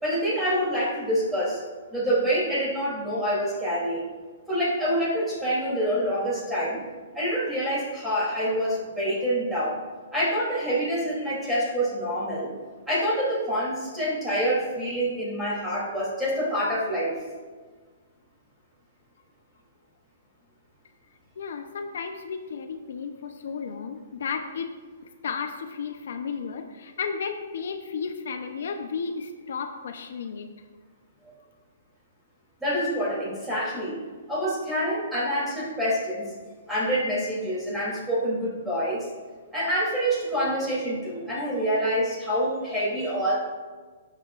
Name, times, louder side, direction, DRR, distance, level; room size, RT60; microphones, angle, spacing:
voice 1, 0.0-1.6 1.9-4.0 4.5-6.8 7.1-9.8 10.1-12.5 12.9-17.1 31.2-31.3 32.6-34.0 34.3-36.2 36.7-39.0 39.5-43.3, equal, 5° right, -8 dB, 3.1 m, -26 dB
voice 2, 21.4-24.7 25.2-30.5, left 5 dB, 65° left, 6 dB, 0.8 m, -33 dB
16.0 x 7.7 x 2.5 m, 1.4 s
hypercardioid pair, 165°, 0 cm